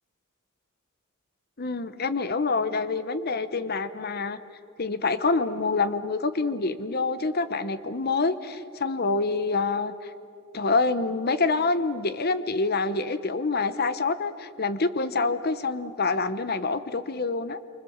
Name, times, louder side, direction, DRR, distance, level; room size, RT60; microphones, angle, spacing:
voice 1, 1.6-4.4 4.8-10.1 10.5-17.6, left 3 dB, 50° left, 12 dB, 1.0 m, -26 dB
27.5 x 25.0 x 7.2 m, 2.5 s
head